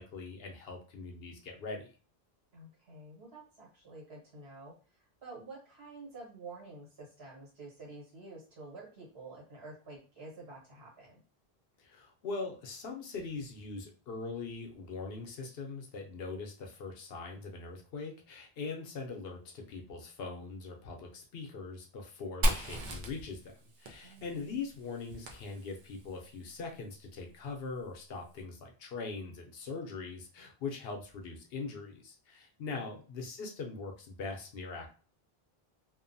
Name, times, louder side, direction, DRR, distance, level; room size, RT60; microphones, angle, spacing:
voice 1, 0.0-1.9 11.8-34.9, left 4 dB, 70° left, 2 dB, 0.9 m, -41 dB
voice 2, 2.5-4.7 5.2-11.2 24.0-24.3, right 3 dB, 90° right, -3 dB, 1.5 m, -49 dB
Fire, 22.4-26.1, equal, 55° right, 0.7 m, -35 dB
2.7 x 2.2 x 2.6 m, 0.37 s
omnidirectional pair, 1.0 m